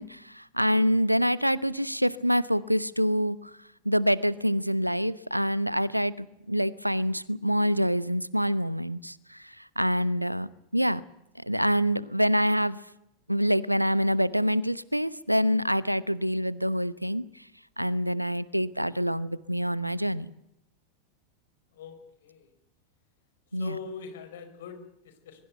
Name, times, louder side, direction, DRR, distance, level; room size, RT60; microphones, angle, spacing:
voice 1, 0.0-3.5 3.8-11.0 11.4-12.8 13.3-17.2 17.8-20.3 23.5-23.8, equal, 90° right, 19 dB, 0.9 m, -26 dB
voice 2, 21.7-22.5 23.5-25.4, left 5 dB, 60° left, 9 dB, 5.1 m, -42 dB
22.5 x 21.5 x 8.0 m, 0.81 s
figure-of-eight pair, 90°, 0 cm